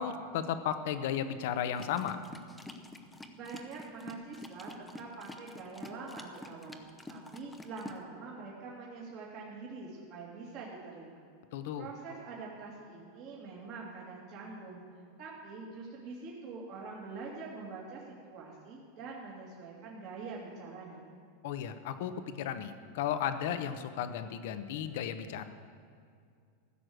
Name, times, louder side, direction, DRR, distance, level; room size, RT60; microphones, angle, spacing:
voice 1, 0.0-2.2 11.5-11.9 21.4-22.1 22.4-25.4, left 9 dB, 65° left, 10 dB, 0.9 m, -34 dB
sound 1, 1.8-8.0, left 1 dB, 5° left, 0.8 m, -48 dB
voice 2, 3.3-4.7 5.0-6.8 7.1-11.3 11.8-14.8 15.2-18.0 18.3-21.1, right 4 dB, 45° right, -4 dB, 2.2 m, -45 dB
15.0 x 6.5 x 7.8 m, 2.3 s
supercardioid pair, 135°, 0 cm